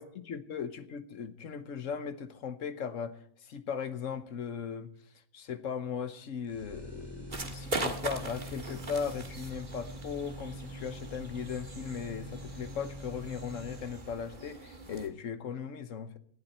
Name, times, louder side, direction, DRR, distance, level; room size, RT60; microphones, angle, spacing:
voice 1, 0.0-4.9 5.3-16.2, left 7 dB, 70° left, 1.3 m, -38 dB
Fan motor, 6.5-14.5, equal, 20° right, 1.0 m, -45 dB
sound 1, 7.3-15.1, right 2 dB, 35° right, 1.8 m, -41 dB
18.5 x 12.0 x 4.3 m
omnidirectional pair, 1.4 m